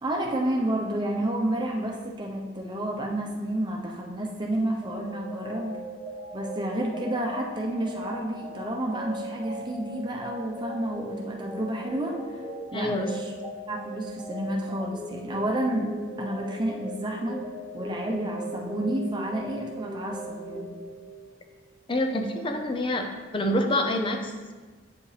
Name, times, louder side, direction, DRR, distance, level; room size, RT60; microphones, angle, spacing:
voice 1, 0.0-5.8 6.3-12.2 12.7-13.3 13.7-15.9 16.2-17.4 17.7-20.7, right 1 dB, 25° right, -1 dB, 0.9 m, -30 dB
sound 1, 4.8-21.4, equal, ahead, 2.0 m, -39 dB
voice 2, 12.7-13.1 21.9-23.1 23.3-24.3, left 1 dB, 30° left, 4 dB, 0.6 m, -26 dB
8.2 x 5.1 x 3.4 m, 1.4 s
head